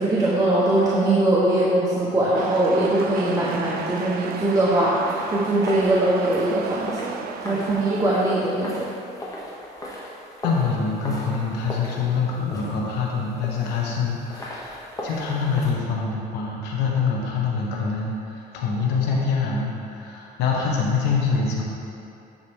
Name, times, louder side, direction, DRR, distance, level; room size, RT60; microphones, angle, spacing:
voice 1, 0.0-8.9, right 1 dB, 20° right, -8 dB, 1.0 m, -21 dB
sound 1, 2.4-8.1, right 6 dB, 60° right, 0.5 m, -35 dB
sound 2, 5.0-15.7, left 1 dB, 20° left, 1.2 m, -38 dB
voice 2, 10.4-21.6, left 5 dB, 85° left, -3 dB, 1.1 m, -25 dB
10.0 x 4.2 x 3.6 m, 2.6 s
cardioid pair, 110°, 17 cm